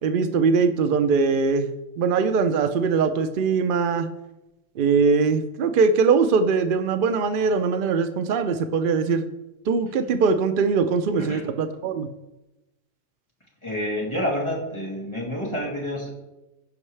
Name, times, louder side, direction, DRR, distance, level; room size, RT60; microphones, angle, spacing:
voice 1, 0.0-1.7 2.0-4.1 4.8-9.2 9.7-12.1, right 5 dB, 70° right, 9 dB, 0.5 m, -21 dB
voice 2, 13.6-16.1, equal, 20° left, -4 dB, 2.2 m, -28 dB
15.5 x 5.4 x 3.2 m, 1.0 s
omnidirectional pair, 1.5 m